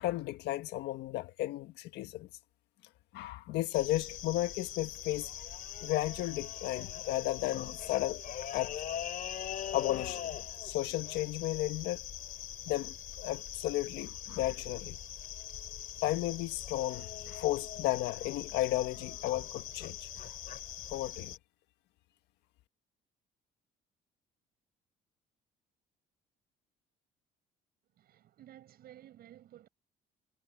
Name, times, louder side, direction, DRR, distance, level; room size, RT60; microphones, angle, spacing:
voice 1, 0.0-2.3 3.1-5.3 5.8-8.2 8.5-8.8 9.7-10.4 10.6-12.1 12.7-15.0 16.0-20.3 20.9-21.3, left 16 dB, 85° left, 1.7 m, -34 dB
sound 1, 3.7-21.4, left 10 dB, 55° left, 2.9 m, -42 dB
voice 2, 27.9-29.7, right 12 dB, 65° right, 7.1 m, -54 dB
cardioid pair, 110°, 17 cm